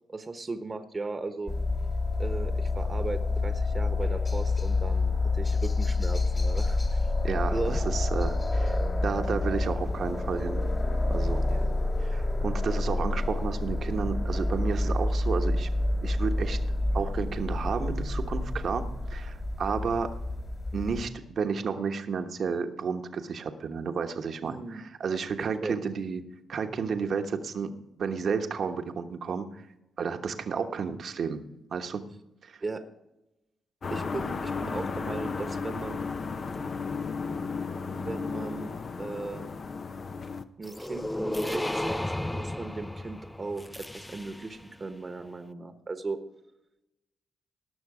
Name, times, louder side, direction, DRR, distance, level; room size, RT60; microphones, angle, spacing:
voice 1, 0.1-1.5 2.2-7.1 7.5-7.8 11.5-11.7 24.4-24.8 25.6-25.8 32.6-32.8 33.9-36.0 37.9-39.5 40.6-42.0 42.3-46.2, right 3 dB, 35° right, 8 dB, 1.1 m, -37 dB
sound 1, 1.5-21.1, left 2 dB, 35° left, 2.5 m, -28 dB
voice 2, 7.2-8.7 9.0-10.6 11.1-11.4 12.0-15.7 16.0-16.6 16.9-20.1 20.7-26.2 26.5-27.7 28.0-29.6 30.0-31.4 31.7-32.0 32.4-32.6, right 5 dB, 60° right, 6 dB, 1.2 m, -32 dB
sound 2, 33.8-40.4, left 5 dB, 55° left, 0.8 m, -34 dB
sound 3, 40.6-44.7, left 1 dB, 15° left, 0.5 m, -33 dB
18.5 x 6.5 x 4.9 m, 0.90 s
hypercardioid pair, 45°, 0 cm